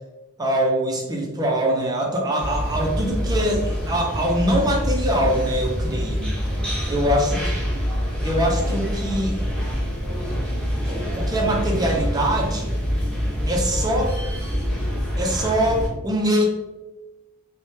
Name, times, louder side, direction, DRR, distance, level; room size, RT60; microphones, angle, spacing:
voice 1, 0.4-6.3 6.9-7.4 8.2-9.4 10.9-12.7 13.5-14.2 15.2-16.4, equal, 20° right, 0 dB, 0.4 m, -23 dB
sound 1, 2.4-15.9, equal, 5° left, 0.8 m, -26 dB
3.2 x 2.1 x 2.7 m, 1.0 s
head